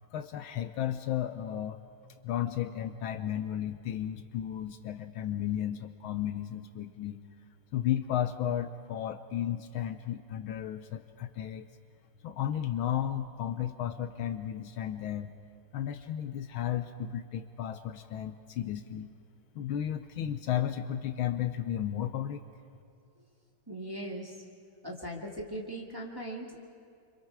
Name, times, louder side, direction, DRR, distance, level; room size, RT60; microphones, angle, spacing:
voice 1, 0.1-1.8 2.2-7.2 7.7-11.7 12.2-15.3 15.7-19.1 19.5-22.4, left 10 dB, 75° left, 9 dB, 1.5 m, -33 dB
voice 2, 23.7-24.3 24.8-26.7, right 1 dB, 10° right, -2 dB, 2.2 m, -39 dB
29.0 x 25.0 x 4.7 m, 2.4 s
omnidirectional pair, 2.4 m